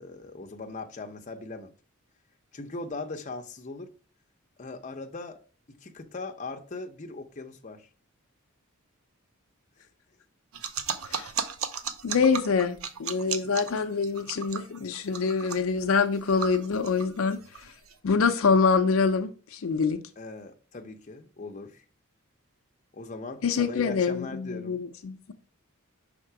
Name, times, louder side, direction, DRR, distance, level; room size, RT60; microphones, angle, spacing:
voice 1, 0.0-1.7 2.5-3.9 4.6-5.4 5.7-7.9 9.8-9.9 20.2-21.8 22.9-24.8, left 3 dB, 35° left, 0.7 m, -39 dB
sound 1, 10.5-17.9, right 7 dB, 85° right, 0.7 m, -35 dB
voice 2, 12.0-17.7 18.0-20.0 23.4-25.3, left 5 dB, 75° left, 0.5 m, -25 dB
5.8 x 3.6 x 4.7 m
head